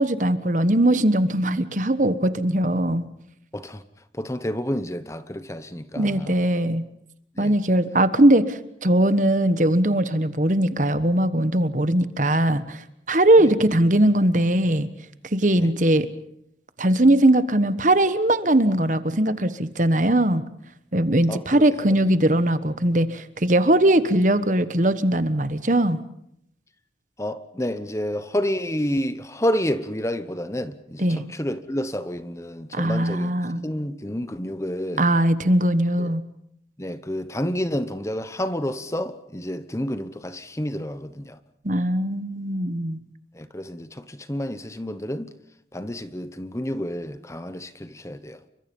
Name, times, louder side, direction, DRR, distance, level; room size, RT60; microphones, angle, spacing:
voice 1, 0.0-3.1 6.0-6.8 7.4-12.8 13.1-14.9 15.3-16.1 16.8-20.4 20.9-26.0 31.0-31.2 32.7-33.7 35.0-36.2 41.6-43.0, right 1 dB, 45° right, 1.3 m, -20 dB
voice 2, 3.5-3.8 4.1-6.4 7.3-7.6 13.4-13.5 15.6-15.7 21.3-22.0 27.2-33.3 33.6-35.1 36.0-36.1 36.8-41.4 43.3-45.3 45.7-48.4, equal, 15° left, 1.0 m, -29 dB
29.5 x 24.5 x 5.4 m
head